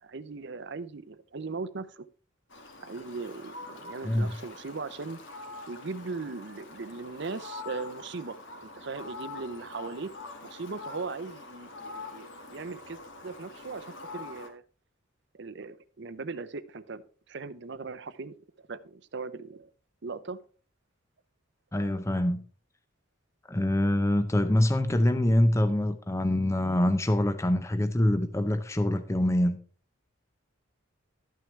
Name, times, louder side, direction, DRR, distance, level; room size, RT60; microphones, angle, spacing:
voice 1, 0.0-2.1 2.8-5.2 5.7-10.1 10.4-14.6 15.3-17.0 17.3-18.3 18.7-19.7 20.0-20.4, right 4 dB, 55° right, 0.6 m, -39 dB
Fowl, 2.5-14.5, left 3 dB, 60° left, 1.9 m, -44 dB
voice 2, 21.7-22.4 23.5-29.6, left 1 dB, 15° left, 0.5 m, -25 dB
12.5 x 9.2 x 3.2 m
head